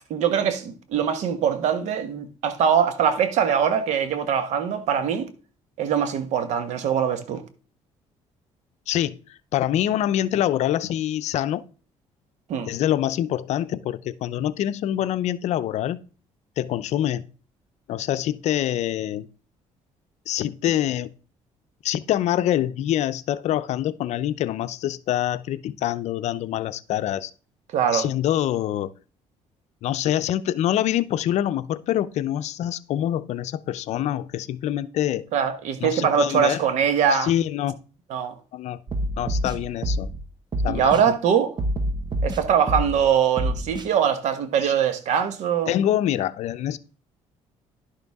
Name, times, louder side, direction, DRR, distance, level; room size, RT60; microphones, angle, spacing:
voice 1, 0.1-5.3 5.8-7.4 12.5-12.7 27.7-28.1 35.3-37.3 38.1-38.3 40.7-41.6 42.2-45.7, right 8 dB, 75° right, 1.3 m, -22 dB
voice 2, 8.9-11.6 12.7-16.0 16.6-17.2 17.9-19.3 20.3-21.1 21.8-27.3 27.9-28.9 29.8-35.3 35.8-36.6 37.1-37.8 38.5-38.8 39.2-40.1 40.6-41.1 44.6-44.7 45.7-46.8, left 12 dB, 70° left, 0.6 m, -25 dB
sound 1, 38.9-40.2 40.5-41.0 41.6-43.0 43.4-43.9, right 1 dB, 35° right, 1.2 m, -27 dB
11.0 x 6.7 x 3.6 m
cardioid pair, 105°, 12 cm